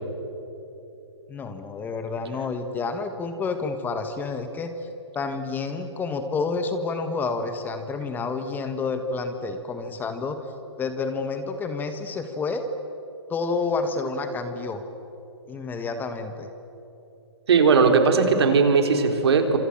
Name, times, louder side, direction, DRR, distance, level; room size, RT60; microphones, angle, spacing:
voice 1, 1.3-4.9 5.1-10.4 10.8-12.7 13.3-14.8 15.5-16.5, left 4 dB, 15° left, 8 dB, 1.5 m, -29 dB
voice 2, 17.5-19.6, right 5 dB, 65° right, 5 dB, 3.9 m, -18 dB
28.5 x 27.0 x 7.5 m, 3.0 s
hypercardioid pair, 140°, 15 cm